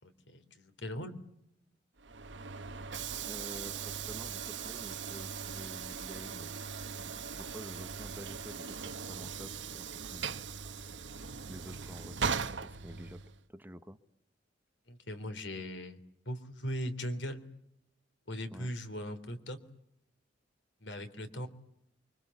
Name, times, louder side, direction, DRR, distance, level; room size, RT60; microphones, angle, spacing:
voice 1, 0.0-1.1 14.9-16.0 16.2-17.4 18.3-19.6 20.8-21.5, equal, 70° left, 9 dB, 3.3 m, -39 dB
Train / Sliding door, 2.0-13.4, right 6 dB, 70° right, 1.1 m, -39 dB
voice 2, 3.3-6.6 7.3-10.3 11.5-13.2 13.5-14.0 18.5-18.7, equal, 10° right, 9 dB, 1.3 m, -49 dB
29.0 x 24.5 x 8.3 m, 0.78 s
head